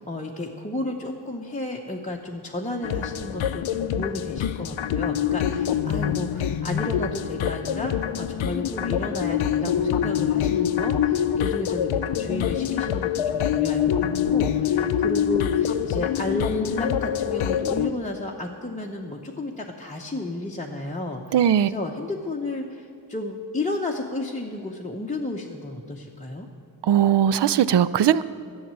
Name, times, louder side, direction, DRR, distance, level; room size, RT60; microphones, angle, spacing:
voice 1, 0.0-26.5, left 2 dB, 15° left, -2 dB, 0.8 m, -32 dB
sound 1, 2.8-17.9, left 9 dB, 85° left, 0.6 m, -25 dB
voice 2, 21.3-21.7 26.8-28.2, right 10 dB, 65° right, 17 dB, 0.5 m, -19 dB
12.5 x 7.3 x 8.8 m, 2.3 s
wide cardioid pair, 115°, 46 cm